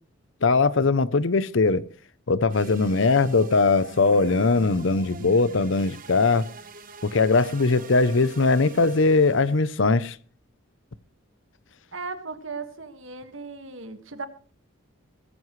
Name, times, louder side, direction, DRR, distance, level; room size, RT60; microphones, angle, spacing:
voice 1, 0.4-1.8 2.3-6.5 7.0-10.2, left 3 dB, 60° left, 0.7 m, -20 dB
sound 1, 2.5-9.6, right 3 dB, 40° right, 1.2 m, -44 dB
voice 2, 11.9-14.3, right 4 dB, 65° right, 1.9 m, -36 dB
19.5 x 15.0 x 3.2 m
head